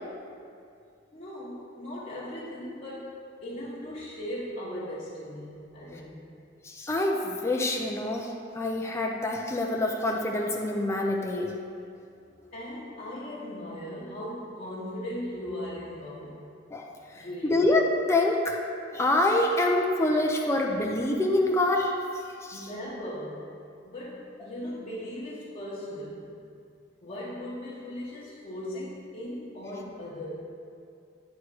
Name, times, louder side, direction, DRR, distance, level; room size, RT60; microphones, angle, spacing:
voice 1, 1.1-6.2 12.5-16.4 17.2-17.7 22.5-23.4 23.8-26.4 27.0-30.3, left 1 dB, 40° left, -9 dB, 0.9 m, -38 dB
voice 2, 6.6-11.5 16.7-18.6 18.9-22.0 22.4-22.7, left 1 dB, 15° left, 0 dB, 0.4 m, -26 dB
9.3 x 3.1 x 4.7 m, 2.4 s
head